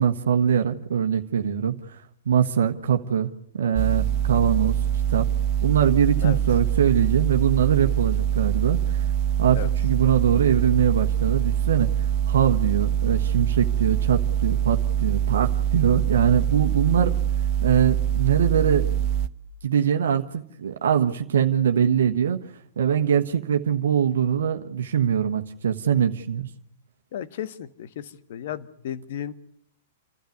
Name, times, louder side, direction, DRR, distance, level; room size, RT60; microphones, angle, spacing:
voice 1, 0.0-4.8 5.1-5.3 5.6-9.1 9.4-11.9 12.3-17.2 17.6-18.9 19.6-26.5, right 8 dB, 75° right, 6 dB, 1.3 m, -22 dB
sound 1, 3.8-19.3, right 10 dB, 45° right, 1.0 m, -24 dB
voice 2, 27.1-29.3, left 9 dB, 60° left, 13 dB, 1.4 m, -34 dB
28.5 x 13.0 x 9.5 m, 0.69 s
hypercardioid pair, 115°, 0 cm